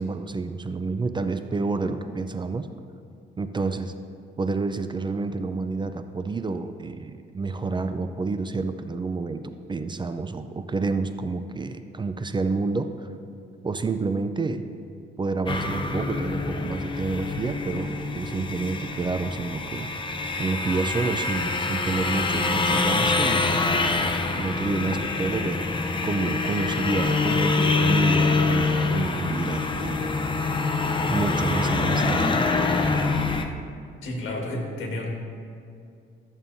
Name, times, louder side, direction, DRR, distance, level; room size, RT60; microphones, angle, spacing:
voice 1, 0.0-2.7 3.4-3.9 4.4-13.1 13.6-14.7 15.2-19.9 20.4-23.5 24.3-30.1 31.1-32.5, right 3 dB, 25° right, 9 dB, 0.4 m, -29 dB
sound 1, 15.5-33.4, left 3 dB, 25° left, 0.6 m, -25 dB
voice 2, 34.0-35.1, left 1 dB, 80° left, 0 dB, 1.6 m, -31 dB
13.0 x 7.2 x 2.7 m, 2.4 s
cardioid pair, 90°, 20 cm